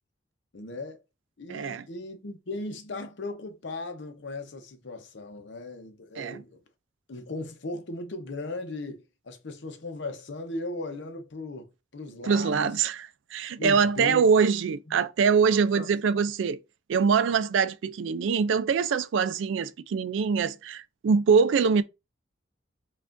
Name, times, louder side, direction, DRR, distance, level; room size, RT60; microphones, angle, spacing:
voice 1, 0.5-1.0 1.4-6.6 7.1-12.8 13.6-14.3 14.9-15.1 15.7-15.9 17.3-17.4, left 2 dB, 65° left, 0.7 m, -37 dB
voice 2, 1.5-1.9 6.2-6.4 12.2-13.0 13.3-16.6 16.9-21.8, right 6 dB, 75° right, 0.3 m, -23 dB
5.6 x 2.4 x 2.5 m
head